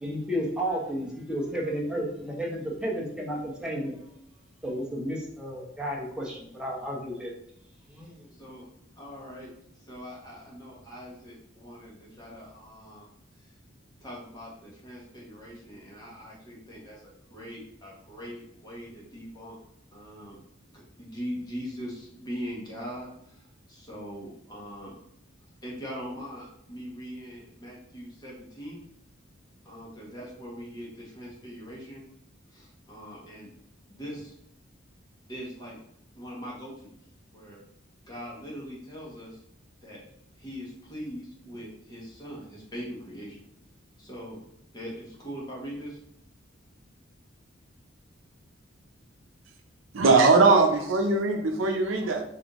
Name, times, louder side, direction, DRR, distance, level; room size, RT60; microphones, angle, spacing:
voice 1, 0.0-3.9 4.6-7.3 7.9-8.3, equal, 5° right, -4 dB, 0.8 m, -32 dB
voice 2, 8.3-8.7 9.0-13.1 14.0-19.6 19.9-20.4 20.7-24.9 25.6-28.8 29.6-32.0 32.5-33.5 33.9-34.3 35.3-35.8 36.1-37.0 37.3-37.6 38.0-39.4 39.8-40.0 40.4-43.4 44.0-44.4 44.7-46.0, equal, 20° left, -4 dB, 1.1 m, -41 dB
voice 3, 49.9-52.2, right 3 dB, 85° right, 4 dB, 0.6 m, -20 dB
3.5 x 2.6 x 3.5 m, 0.73 s
head